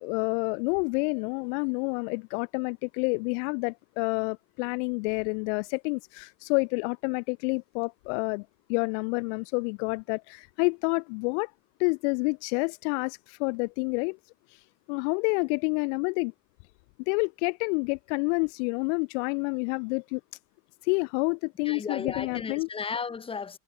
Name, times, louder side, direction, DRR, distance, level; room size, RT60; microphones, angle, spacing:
voice 1, 0.0-11.5 11.8-14.2 14.9-16.3 17.1-20.2 20.8-22.7, left 34 dB, 60° left, 1.3 m, -28 dB
voice 2, 21.7-23.6, left 5 dB, 15° left, 1.0 m, -34 dB
supercardioid pair, 130°, 41 cm